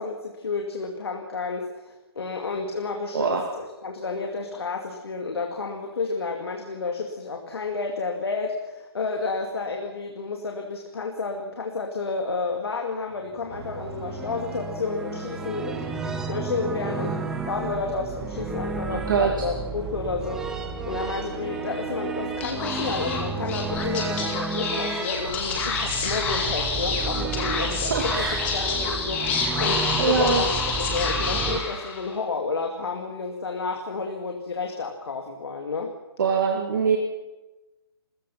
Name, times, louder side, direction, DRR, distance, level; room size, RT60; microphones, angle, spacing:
voice 1, 0.0-20.6 20.8-28.3 28.5-35.9, left 4 dB, 70° left, 3 dB, 2.5 m, -31 dB
voice 2, 3.1-3.4 18.9-19.5 27.9-28.5 30.0-30.4 36.2-37.0, right 5 dB, 50° right, 2 dB, 2.4 m, -23 dB
sound 1, 13.3-31.6, right 4 dB, 5° right, 0.7 m, -33 dB
sound 2, 13.5-26.7, right 3 dB, 80° right, 3.8 m, -41 dB
Speech / Whispering, 22.3-32.2, left 4 dB, 10° left, 2.0 m, -28 dB
29.5 x 15.0 x 5.9 m, 1.1 s
hypercardioid pair, 170°, 13 cm